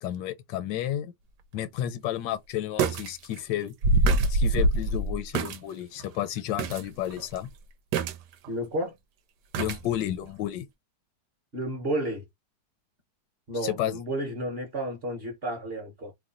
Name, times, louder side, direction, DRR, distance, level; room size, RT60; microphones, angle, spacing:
voice 1, 0.0-1.1 1.5-3.7 4.3-7.5 9.6-10.7 13.6-14.0, left 12 dB, 85° left, 1.2 m, -31 dB
sound 1, 1.6-1.7 2.8-3.1 3.4-3.5 3.8-5.6 6.0-6.1 6.6-6.8 7.1-7.4 7.9-8.5 9.5-9.8 10.2-10.3, right 2 dB, 75° right, 1.2 m, -25 dB
voice 2, 8.5-8.9 11.5-12.2 13.5-16.1, right 1 dB, 45° right, 0.9 m, -31 dB
2.9 x 2.1 x 3.8 m
omnidirectional pair, 1.9 m